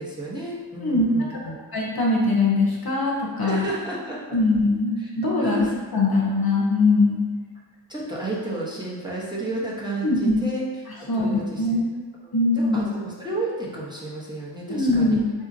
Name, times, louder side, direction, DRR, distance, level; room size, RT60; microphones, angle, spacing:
voice 1, 0.0-1.6 3.4-4.2 5.0-5.1 5.4-5.7 7.9-10.6 11.0-11.8 12.2-15.2, right 1 dB, 10° right, -7 dB, 0.8 m, -31 dB
voice 2, 0.8-1.4 1.7-3.7 4.3-5.7 5.9-7.2 10.0-10.4 11.1-11.9 12.3-12.8 14.7-15.3, left 2 dB, 55° left, -3 dB, 0.6 m, -21 dB
3.8 x 2.7 x 2.6 m, 1.4 s
wide cardioid pair, 45°, 45 cm